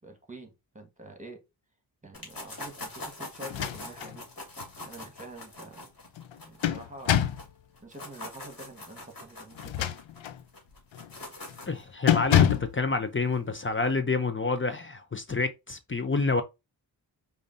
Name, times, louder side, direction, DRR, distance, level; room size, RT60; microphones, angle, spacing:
voice 1, 0.0-1.4 2.0-4.3 4.8-5.9 6.5-7.2 7.8-10.0, right 2 dB, 15° right, 1.5 m, -47 dB
sound 1, 2.1-7.5 7.8-11.8, left 2 dB, 45° left, 2.1 m, -43 dB
sound 2, 3.4-4.2 4.6-4.7 6.2-7.5 9.5-10.4 10.9-11.2 11.5-11.7 12.1-12.8, left 11 dB, 80° left, 0.6 m, -26 dB
voice 2, 11.7-16.4, left 3 dB, 25° left, 0.6 m, -28 dB
5.0 x 2.8 x 2.6 m
cardioid pair, 45°, 46 cm